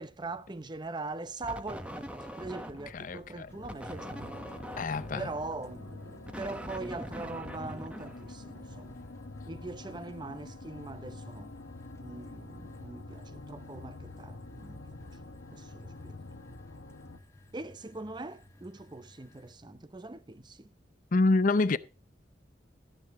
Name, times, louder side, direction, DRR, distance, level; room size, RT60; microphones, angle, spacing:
voice 1, 0.0-4.5 5.2-9.0 9.5-11.5 12.0-14.8 15.5-16.2 17.5-20.7, right 3 dB, 25° right, 0.7 m, -42 dB
sound 1, 1.4-3.1 3.6-8.8, equal, 5° right, 1.0 m, -43 dB
sound 2, 2.9-17.2, left 2 dB, 75° left, 1.0 m, -47 dB
voice 2, 2.9-3.5 4.8-5.3 21.1-21.8, left 3 dB, 50° left, 0.6 m, -26 dB
sound 3, 3.5-19.5, left 1 dB, 15° left, 0.9 m, -57 dB
13.5 x 9.7 x 3.6 m
head